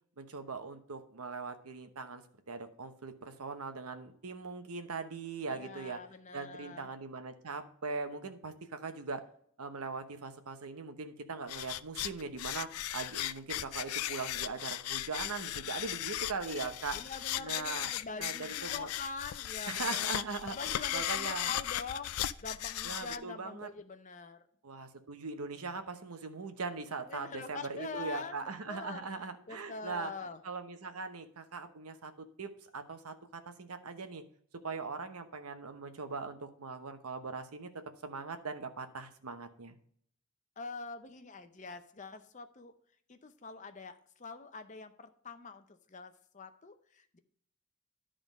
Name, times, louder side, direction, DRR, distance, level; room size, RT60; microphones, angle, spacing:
voice 1, 0.2-2.2 2.5-6.0 6.3-9.2 9.6-17.0 17.4-17.9 18.2-18.9 19.7-21.5 22.8-23.7 24.6-30.1 30.4-34.2 34.6-37.7 38.0-39.7, right 4 dB, 90° right, 8 dB, 0.9 m, -40 dB
voice 2, 5.5-6.9 16.9-20.1 20.5-22.1 22.4-24.5 27.1-29.0 29.5-30.4 40.6-42.7 43.1-47.2, left 4 dB, 35° left, 9 dB, 0.6 m, -44 dB
sound 1, 11.5-23.2, left 13 dB, 85° left, 0.4 m, -37 dB
11.0 x 3.8 x 5.1 m, 0.62 s
head